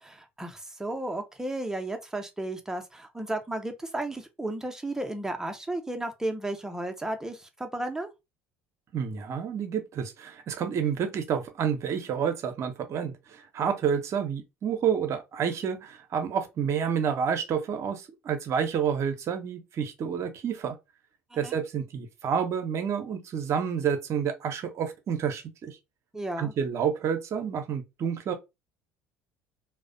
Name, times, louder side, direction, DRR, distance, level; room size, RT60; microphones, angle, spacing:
voice 1, 0.0-8.1 21.4-21.6 26.1-26.5, right 1 dB, 10° right, 0.6 m, -33 dB
voice 2, 8.9-20.8 21.3-25.8 26.4-28.3, right 7 dB, 50° right, 0.6 m, -29 dB
2.4 x 2.1 x 2.5 m
hypercardioid pair, 65°, 7 cm